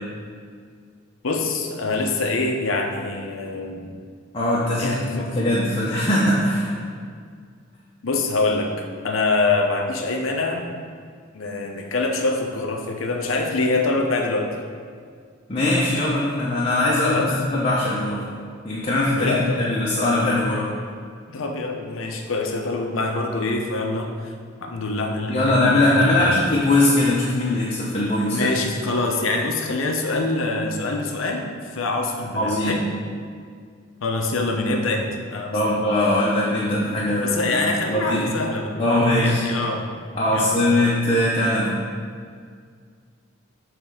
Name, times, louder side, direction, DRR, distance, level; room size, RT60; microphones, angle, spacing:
voice 1, 1.2-3.9 4.8-5.3 8.0-8.7 9.0-10.7 11.3-14.5 17.0-17.3 19.2-19.6 21.3-24.3 24.6-26.3 28.3-31.5 31.7-32.9 34.0-35.8 37.2-39.8 40.3-40.5, left 3 dB, 85° left, 3 dB, 0.7 m, -25 dB
voice 2, 4.3-6.7 15.5-18.3 18.6-20.7 25.3-28.4 32.3-32.8 35.5-38.2 38.8-39.4 40.1-41.8, left 1 dB, 30° left, -6 dB, 0.7 m, -21 dB
7.1 x 3.3 x 4.8 m, 2.1 s
head